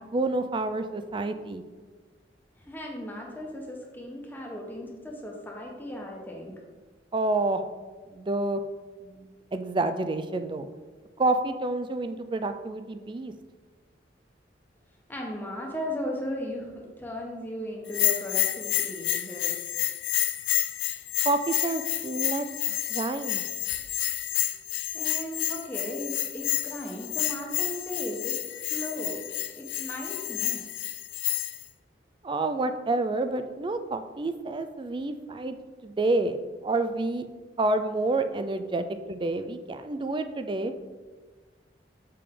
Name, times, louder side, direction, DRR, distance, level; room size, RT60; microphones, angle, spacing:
voice 1, 0.0-1.6 7.1-7.6 8.1-8.6 9.0-10.7 11.2-13.3 21.2-22.4 22.9-23.4 32.2-35.6 35.8-36.4 36.6-37.3 37.6-40.7, right 2 dB, 25° right, 9 dB, 0.4 m, -28 dB
voice 2, 2.6-6.6 15.1-19.5 24.9-29.2 29.6-30.6, equal, 10° left, -1 dB, 1.0 m, -36 dB
Bell, 17.9-31.6, left 14 dB, 80° left, 0.5 m, -29 dB
6.8 x 5.0 x 3.7 m, 1.3 s
head